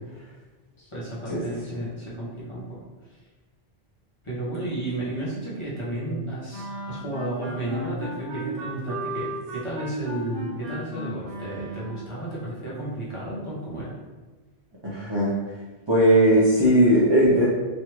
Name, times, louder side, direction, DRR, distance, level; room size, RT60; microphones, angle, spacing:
voice 1, 0.9-2.8 3.1-3.2 4.2-14.0, right 1 dB, 30° left, -8 dB, 0.9 m, -32 dB
sound 1, 6.5-12.2, right 1 dB, 65° right, 0.9 m, -35 dB
voice 2, 14.8-15.4 15.9-17.5, right 1 dB, 35° right, -8 dB, 0.5 m, -18 dB
3.1 x 2.5 x 2.9 m, 1.2 s
omnidirectional pair, 1.1 m